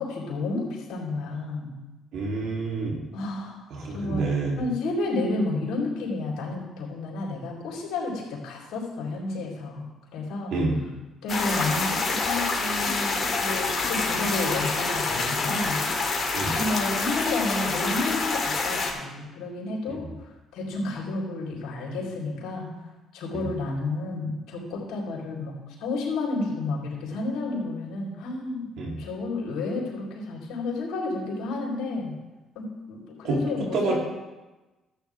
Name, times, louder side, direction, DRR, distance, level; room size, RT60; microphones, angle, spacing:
voice 1, 0.0-1.7 3.1-10.6 11.2-15.8 16.5-22.7 23.1-25.5 25.8-28.7 29.0-32.2 32.5-34.0, left 2 dB, 70° left, -4 dB, 3.9 m, -31 dB
voice 2, 2.1-3.0 3.7-4.6 10.5-10.8 16.3-16.6 19.9-20.0 28.8-28.9 33.2-34.0, right 3 dB, 70° right, -2 dB, 3.4 m, -28 dB
sound 1, 11.3-18.9, left 3 dB, 40° left, 2.8 m, -27 dB
13.5 x 8.9 x 3.6 m, 1.1 s
hypercardioid pair, 55°, 0 cm